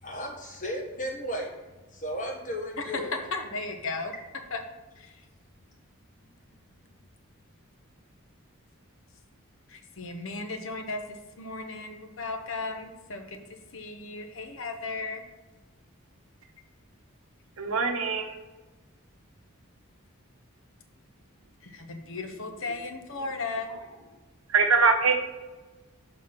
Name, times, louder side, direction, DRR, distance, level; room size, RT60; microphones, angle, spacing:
voice 1, 0.0-3.1, equal, 35° left, -1 dB, 1.4 m, -35 dB
voice 2, 3.3-4.1 4.5-4.6 5.0-5.2 9.7-13.4 13.7-15.2 21.6-23.7, left 3 dB, 60° left, 6 dB, 0.8 m, -35 dB
voice 3, 17.6-18.4 24.5-25.1, right 5 dB, 70° right, 4 dB, 1.0 m, -22 dB
6.3 x 3.9 x 5.9 m, 1.2 s
head